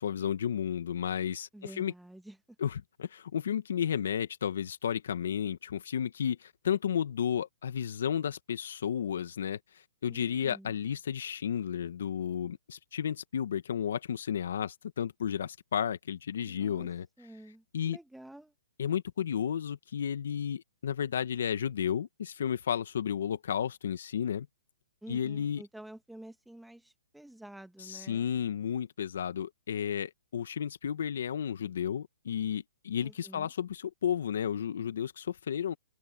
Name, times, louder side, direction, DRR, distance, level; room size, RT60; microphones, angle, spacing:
voice 1, 0.0-1.9 2.6-17.1 17.7-18.0 18.8-24.5 25.1-25.6 27.8-35.7, left 8 dB, 65° left, 1.6 m, -33 dB
voice 2, 1.5-2.4 10.1-10.7 16.4-16.9 17.2-18.5 25.0-28.3 33.0-33.5, right 1 dB, ahead, 1.8 m, -49 dB
hypercardioid pair, 145°, 0 cm